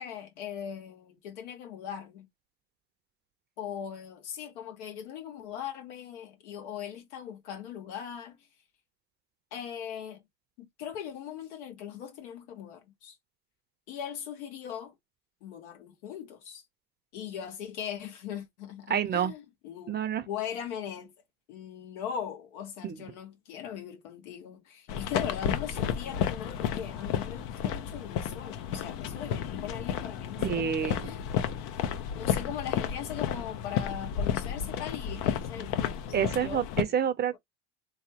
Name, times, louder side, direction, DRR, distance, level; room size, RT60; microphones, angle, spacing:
voice 1, 0.0-2.3 3.6-8.4 9.5-10.2 10.6-13.2 13.9-14.9 15.4-16.6 17.1-21.1 21.5-31.2 32.1-36.0 36.4-37.0, left 9 dB, 80° left, 1.4 m, -40 dB
voice 2, 18.9-19.3 19.9-20.3 22.8-23.0 30.4-31.1 36.1-37.4, right 8 dB, 30° right, 0.7 m, -28 dB
sound 1, 24.9-36.8, left 9 dB, 60° left, 0.8 m, -32 dB
3.6 x 3.1 x 2.8 m
supercardioid pair, 105°, 34 cm